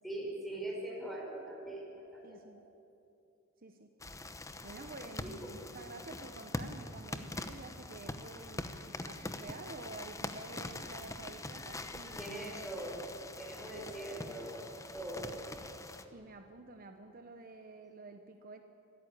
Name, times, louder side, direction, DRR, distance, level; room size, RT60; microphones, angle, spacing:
voice 1, 0.0-1.8 2.1-2.4 5.2-5.5 12.2-13.1 13.4-15.4, right 1 dB, ahead, -2 dB, 5.7 m, -42 dB
voice 2, 2.2-2.6 3.6-3.9 4.6-12.3 16.1-18.6, right 3 dB, 45° right, 6 dB, 1.1 m, -50 dB
sound 1, 4.0-16.1, left 2 dB, 15° left, 1.0 m, -44 dB
24.5 x 14.0 x 9.9 m, 2.8 s
head